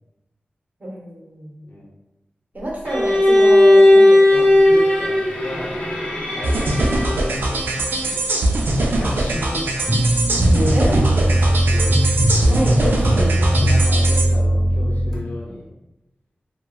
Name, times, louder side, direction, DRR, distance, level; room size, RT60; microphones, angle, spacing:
voice 1, 0.8-1.6 2.5-4.5 8.8-9.1 10.7-11.0 11.5-11.6 12.5-12.8, right 1 dB, 50° right, -2 dB, 0.8 m, -28 dB
Bowed string instrument, 2.9-7.4, left 1 dB, 40° left, 1.0 m, -15 dB
voice 2, 4.3-5.8 6.3-8.3 9.0-9.6 10.5-11.0 11.4-12.0 12.4-15.6, left 1 dB, 65° left, -4 dB, 0.6 m, -32 dB
sound 1, 6.4-14.3, right 1 dB, 75° right, 0.4 m, -21 dB
sound 2, 9.9-15.2, right 1 dB, 10° left, 0.9 m, -18 dB
3.1 x 2.2 x 2.3 m, 0.97 s
wide cardioid pair, 60°, 4 cm